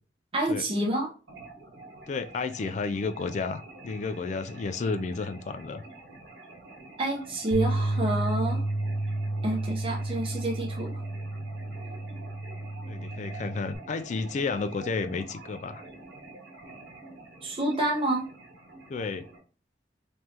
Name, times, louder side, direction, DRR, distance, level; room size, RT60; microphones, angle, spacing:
voice 1, 0.3-1.1 7.0-8.6 9.4-11.0 17.4-18.2, right 1 dB, 30° right, 0.7 m, -28 dB
sound 1, 1.3-19.4, right 2 dB, 85° right, 1.6 m, -47 dB
voice 2, 2.1-5.8 12.9-15.8 18.9-19.3, left 4 dB, 40° left, 0.3 m, -32 dB
sound 2, 7.5-13.8, right 1 dB, 60° left, 0.8 m, -31 dB
3.6 x 3.1 x 2.7 m
head